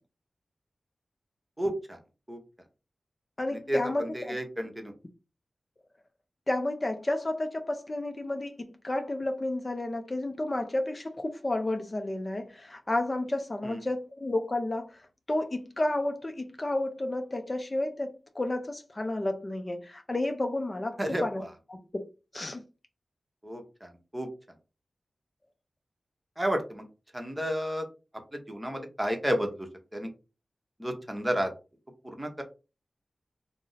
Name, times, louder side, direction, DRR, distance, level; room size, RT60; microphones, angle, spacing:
voice 1, 1.6-2.0 2.3-2.4 3.5-4.9 13.6-13.8 21.0-21.5 23.4-24.3 26.4-26.8 27.1-27.8 28.3-30.1 30.8-31.5 32.0-32.4, equal, 15° right, 0.9 m, -32 dB
voice 2, 3.4-4.4 6.5-21.4 21.7-22.1 22.3-22.6, left 1 dB, 35° left, 0.4 m, -31 dB
2.5 x 2.0 x 3.9 m
cardioid pair, 55°, 0 cm